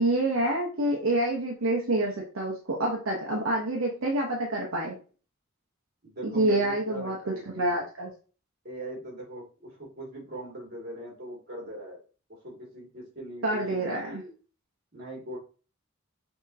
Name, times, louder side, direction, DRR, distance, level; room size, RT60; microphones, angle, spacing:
voice 1, 0.0-5.0 6.2-7.2 7.6-8.1 13.4-14.2, right 1 dB, 80° right, -1 dB, 0.9 m, -27 dB
voice 2, 6.0-7.8 8.6-12.0 12.4-14.3 14.9-15.4, right 1 dB, 50° right, -2 dB, 2.3 m, -40 dB
6.1 x 2.9 x 2.7 m, 0.37 s
head